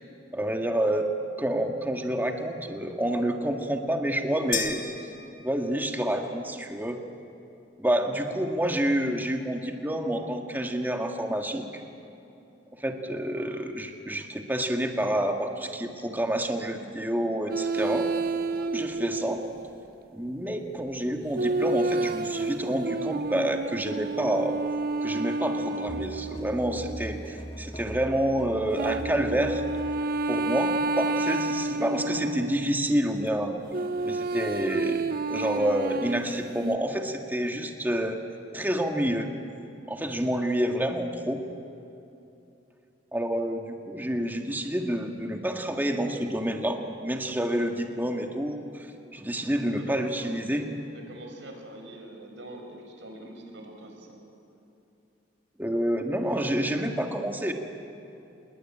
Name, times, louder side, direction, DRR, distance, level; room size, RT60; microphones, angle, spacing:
voice 1, 0.3-1.1 1.4-4.9 5.4-7.0 7.8-11.7 12.8-18.1 18.6-19.4 20.1-24.6 25.0-29.6 30.3-33.5 34.0-38.2 38.5-39.3 39.9-41.4 43.1-48.9 49.1-50.7 55.6-57.5, right 1 dB, 10° right, 4 dB, 1.9 m, -28 dB
sound 1, 4.5-6.0, left 8 dB, 50° left, 2.0 m, -34 dB
sound 2, 17.5-19.7 21.3-27.4 28.8-32.8 33.7-36.8, right 2 dB, 55° right, 0.8 m, -30 dB
sound 3, 25.9-30.1, equal, 30° left, 2.0 m, -40 dB
voice 2, 49.7-50.6 50.9-54.2, right 1 dB, 80° right, 3 dB, 5.1 m, -44 dB
27.5 x 21.5 x 9.0 m, 2.8 s
head